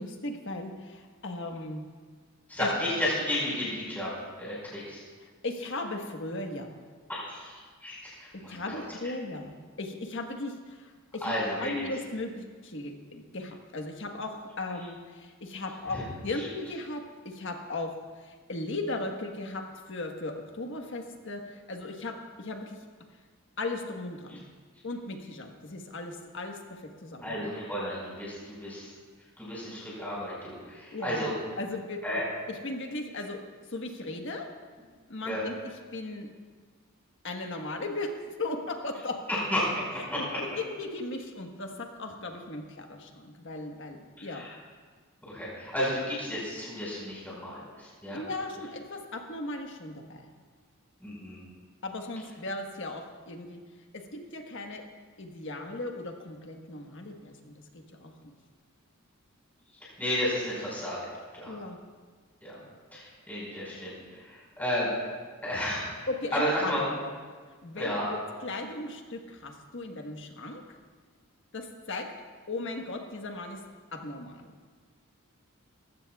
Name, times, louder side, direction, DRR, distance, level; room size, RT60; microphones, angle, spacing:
voice 1, 0.0-1.9 2.6-2.7 5.2-6.8 8.5-11.3 11.6-19.6 19.9-22.9 23.6-24.5 24.8-27.5 30.9-31.3 31.6-32.2 32.5-33.4 33.7-34.5 35.1-35.5 35.9-36.3 37.2-39.1 40.4-44.5 48.1-50.3 51.8-53.6 53.9-54.8 55.2-58.3 61.4-61.8 66.1-67.1 67.6-70.8 71.5-72.1 72.5-73.6 73.9-74.6, left 2 dB, 60° left, 3 dB, 1.4 m, -37 dB
voice 2, 2.5-4.1 4.4-5.0 7.1-8.8 11.2-11.9 27.2-28.9 29.4-31.3 32.0-32.2 35.2-35.4 39.5-40.2 44.3-44.5 45.2-48.2 51.0-51.4 59.8-61.5 62.4-62.6 62.9-64.9 65.4-66.8 67.8-68.1, equal, 10° left, -6 dB, 4.8 m, -32 dB
19.5 x 15.0 x 2.4 m, 1.5 s
head